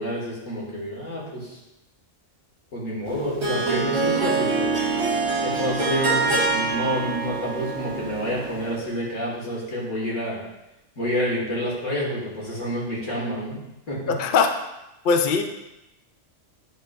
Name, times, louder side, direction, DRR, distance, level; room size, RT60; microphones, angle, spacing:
voice 1, 0.0-1.6 2.7-4.8 5.4-10.4 11.0-13.6 13.9-14.0, equal, 85° left, -5 dB, 2.3 m, -28 dB
Harp, 3.0-8.8, right 3 dB, 60° right, 1.4 m, -25 dB
voice 2, 14.1-14.6 15.0-15.4, left 5 dB, 55° left, 5 dB, 0.6 m, -20 dB
10.0 x 3.9 x 2.5 m, 0.92 s
omnidirectional pair, 1.3 m